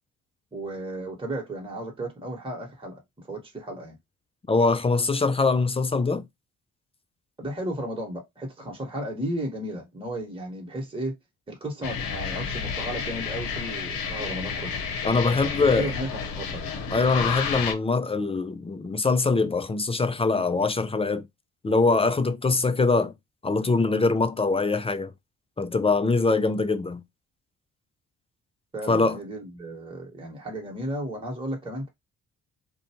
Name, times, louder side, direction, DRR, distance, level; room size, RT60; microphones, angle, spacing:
voice 1, 0.5-4.0 7.4-11.1 11.5-14.8 15.5-16.8 28.7-31.9, right 1 dB, 15° right, 1.3 m, -34 dB
voice 2, 4.5-6.2 15.0-15.9 16.9-21.2 21.6-23.1 23.4-25.1 25.6-27.0 28.9-29.2, left 3 dB, 15° left, 0.4 m, -23 dB
sound 1, 11.8-17.7, left 6 dB, 70° left, 0.8 m, -31 dB
2.5 x 2.2 x 2.9 m
hypercardioid pair, 50°, 36 cm